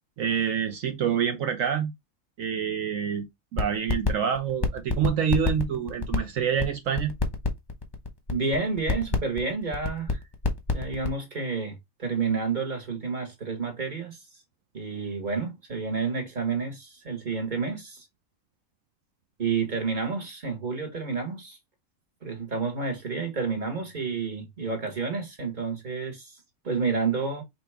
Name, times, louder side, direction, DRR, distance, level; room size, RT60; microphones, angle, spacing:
voice 1, 0.2-1.9 2.4-3.3 3.5-7.1, right 8 dB, 70° right, 1.1 m, -27 dB
sound 1, 3.6-4.1 4.3-11.1, left 4 dB, 20° left, 0.8 m, -26 dB
voice 2, 8.3-10.2 10.7-14.2 14.7-18.0 19.4-21.6 22.2-26.3 26.6-27.4, right 4 dB, 35° right, 1.4 m, -30 dB
5.0 x 3.1 x 3.4 m
omnidirectional pair, 1.4 m